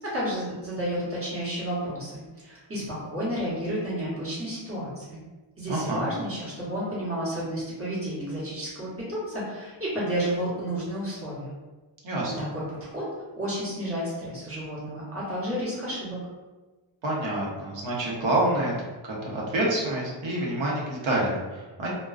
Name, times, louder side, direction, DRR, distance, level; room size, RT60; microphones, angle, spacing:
voice 1, 0.0-5.2 5.6-11.5 12.4-13.0 13.4-16.2, equal, 25° right, -8 dB, 1.1 m, -31 dB
voice 2, 5.7-6.0 12.0-12.5 17.0-18.7 19.1-21.9, right 1 dB, 70° right, -4 dB, 0.9 m, -27 dB
2.4 x 2.2 x 2.4 m, 1.2 s
wide cardioid pair, 110°, 50 cm